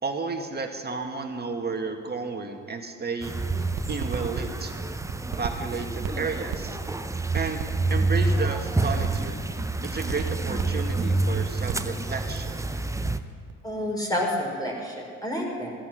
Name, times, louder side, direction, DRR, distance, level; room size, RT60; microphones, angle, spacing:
voice 1, 0.0-4.7 5.4-6.8 7.3-9.4 9.8-12.6, right 4 dB, 25° right, 4 dB, 2.1 m, -32 dB
sound 1, 3.2-13.2, right 3 dB, 10° right, 0.8 m, -28 dB
sound 2, 3.5-13.0 13.3-13.7, right 12 dB, 60° right, 1.2 m, -35 dB
voice 2, 13.6-15.7, left 1 dB, 10° left, -1 dB, 5.2 m, -29 dB
16.5 x 12.5 x 6.0 m, 2.2 s
hypercardioid pair, 55°, 37 cm